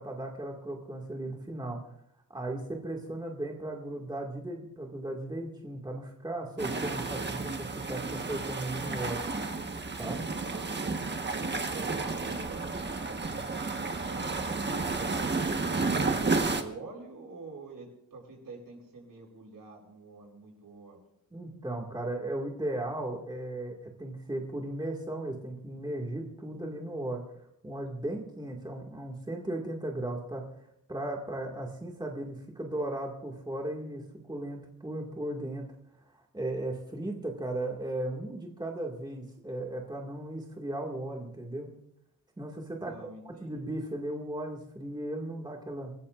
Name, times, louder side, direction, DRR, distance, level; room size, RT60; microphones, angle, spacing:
voice 1, 0.0-1.8 2.3-9.2 10.0-10.2 21.3-27.2 27.6-30.5 30.9-35.7 36.1-41.7 42.4-43.0 43.2-45.9, right 1 dB, 10° right, 0 dB, 2.1 m, -36 dB
sound 1, 6.6-16.6, right 3 dB, 30° right, 1.4 m, -32 dB
voice 2, 11.2-14.4 14.9-21.0 42.8-43.5, right 3 dB, 70° right, -2 dB, 8.0 m, -46 dB
30.0 x 14.5 x 2.5 m, 0.76 s
wide cardioid pair, 110°, 35 cm